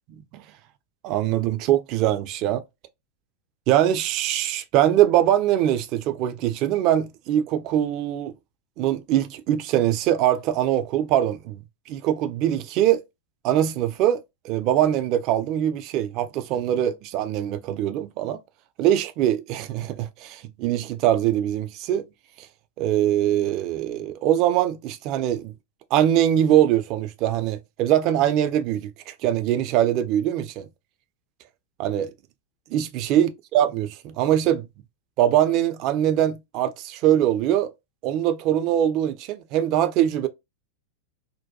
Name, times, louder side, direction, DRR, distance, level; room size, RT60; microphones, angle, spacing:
voice 1, 1.0-2.6 3.7-8.3 8.8-11.6 11.9-13.0 13.4-18.4 18.8-22.0 22.4-22.5 22.8-25.5 25.9-30.7 31.8-32.1 32.7-34.7 35.2-37.7 38.0-40.3, right 11 dB, 40° right, 0.3 m, -22 dB
2.5 x 2.2 x 2.3 m
figure-of-eight pair, 90°, 0 cm